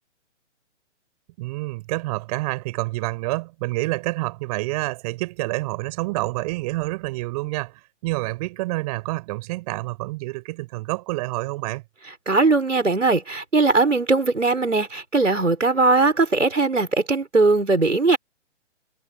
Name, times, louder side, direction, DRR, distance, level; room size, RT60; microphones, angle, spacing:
voice 1, 1.4-11.8, right 21 dB, 30° right, 7.9 m, -28 dB
voice 2, 12.3-18.2, right 3 dB, 85° right, 5.8 m, -19 dB
figure-of-eight pair, 135°, 36 cm